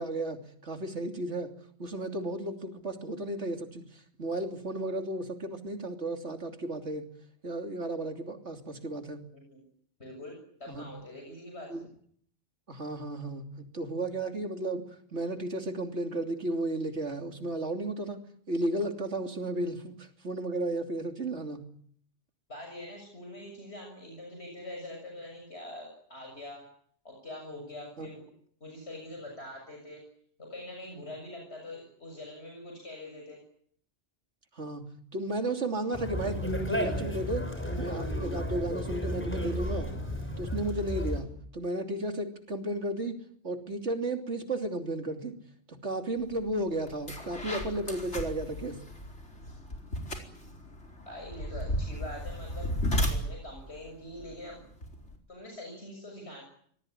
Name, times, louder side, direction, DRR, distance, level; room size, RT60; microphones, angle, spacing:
voice 1, 0.0-1.5 1.8-3.9 4.2-7.1 7.4-9.2 10.7-10.9 11.7-11.9 12.7-14.8 15.1-18.2 18.5-21.6 28.0-28.1 34.6-39.9 40.4-41.3 41.5-43.1 43.4-45.3 45.7-48.8, right 1 dB, 85° right, 5 dB, 3.3 m, -34 dB
voice 2, 10.0-11.8 22.5-26.7 27.0-28.2 28.6-30.0 30.4-33.4 51.1-52.7 53.1-54.6 55.3-56.4, left 1 dB, 70° left, 1 dB, 7.5 m, -44 dB
Conversation, 35.9-41.2, equal, 10° left, 6.4 m, -33 dB
sound 1, 46.3-46.5 46.9-55.1, equal, 85° left, 4.9 m, -35 dB
25.5 x 19.5 x 9.9 m, 0.63 s
omnidirectional pair, 1.1 m